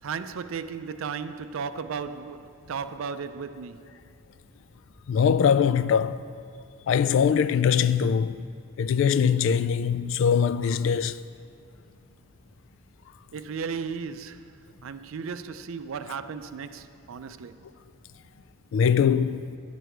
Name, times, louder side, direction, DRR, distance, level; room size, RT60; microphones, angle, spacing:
voice 1, 0.0-3.9 13.3-17.7, right 6 dB, 85° right, 0.4 m, -35 dB
voice 2, 5.1-6.3 6.9-8.4 8.8-11.2 18.7-19.5, left 7 dB, 70° left, 0.3 m, -22 dB
11.5 x 8.2 x 4.5 m
head